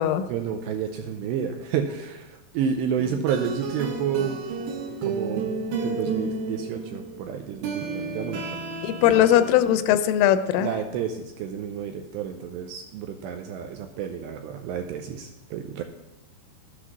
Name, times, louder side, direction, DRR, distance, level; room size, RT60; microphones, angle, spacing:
voice 1, 0.3-4.4 5.0-5.5 5.8-8.4 9.1-9.3 10.6-15.8, right 7 dB, 80° right, 5 dB, 2.5 m, -30 dB
sound 1, 3.0-9.6, right 4 dB, 60° right, 2.7 m, -32 dB
voice 2, 8.8-10.7, left 11 dB, 85° left, 11 dB, 3.2 m, -20 dB
12.0 x 8.4 x 6.0 m, 1.0 s
omnidirectional pair, 5.6 m